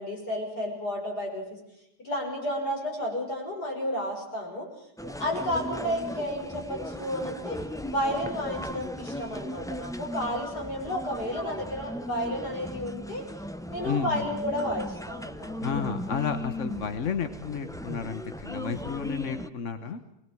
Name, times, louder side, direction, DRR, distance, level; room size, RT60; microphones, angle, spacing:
voice 1, 0.0-1.6 2.0-4.7 5.0-7.6 7.9-13.2 13.7-15.6 19.8-20.0, equal, 70° left, 0 dB, 6.6 m, -32 dB
sound 1, 5.0-19.5, equal, 5° left, 0.3 m, -37 dB
voice 2, 15.6-20.0, left 7 dB, 50° left, 9 dB, 1.4 m, -32 dB
22.0 x 20.0 x 7.7 m, 0.83 s
omnidirectional pair, 1.8 m